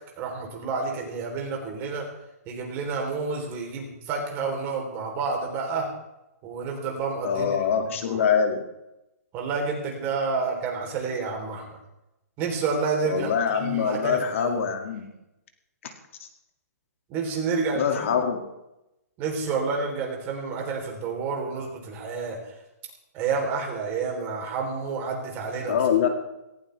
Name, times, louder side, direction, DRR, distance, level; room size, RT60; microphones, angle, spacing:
voice 1, 0.2-2.1 2.5-5.9 6.4-7.6 8.0-8.2 9.3-11.7 12.4-14.7 17.1-18.1 19.2-22.4 23.1-25.8, right 4 dB, 25° right, 1 dB, 3.6 m, -29 dB
voice 2, 7.2-8.6 13.1-15.1 15.8-15.9 17.8-18.4 25.6-26.1, left 7 dB, 50° left, 5 dB, 2.3 m, -24 dB
18.0 x 17.0 x 3.4 m, 0.91 s
hypercardioid pair, 160°, 9 cm